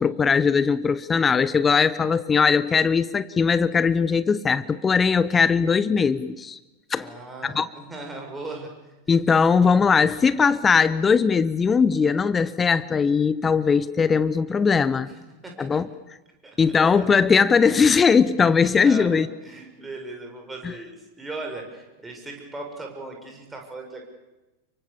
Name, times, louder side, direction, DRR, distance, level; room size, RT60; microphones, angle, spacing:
voice 1, 0.0-6.6 6.9-7.1 7.4-7.7 9.1-15.1 15.6-15.9 16.6-19.3 20.6-20.7, left 5 dB, 20° left, 17 dB, 0.9 m, -20 dB
voice 2, 7.0-9.2 15.4-15.8 16.4-16.6 16.9-17.1 18.8-24.0, right 2 dB, 10° right, 1 dB, 7.6 m, -38 dB
29.5 x 24.0 x 7.3 m, 1.0 s
figure-of-eight pair, 90°, 0 cm